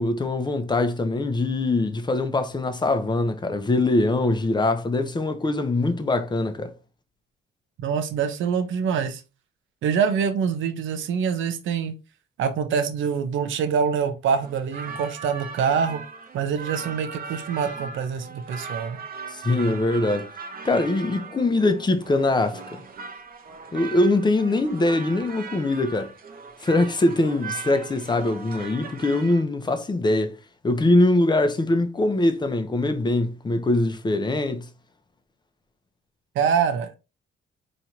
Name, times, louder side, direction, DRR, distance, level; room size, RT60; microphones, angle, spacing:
voice 1, 0.0-6.7 19.3-20.3 20.6-22.6 23.7-26.1 26.6-30.4 30.6-34.7, left 2 dB, 20° left, 0.7 m, -22 dB
voice 2, 7.8-9.2 9.8-11.9 12.4-16.0 16.3-19.0 36.3-37.0, right 6 dB, 80° right, 0.8 m, -25 dB
sound 1, 14.2-29.4, right 5 dB, 50° right, 0.9 m, -39 dB
4.3 x 3.1 x 2.7 m
cardioid pair, 90°, 20 cm